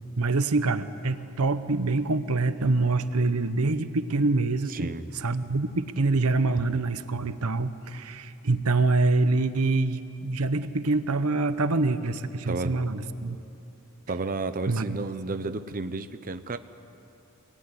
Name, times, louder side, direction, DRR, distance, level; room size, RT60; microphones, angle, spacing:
voice 1, 0.2-4.9 5.1-13.4 14.7-15.0, right 3 dB, 85° right, 11 dB, 1.0 m, -25 dB
voice 2, 4.7-5.1 12.5-12.7 14.1-16.6, right 3 dB, 40° right, 9 dB, 0.8 m, -32 dB
25.5 x 19.0 x 9.8 m, 2.8 s
head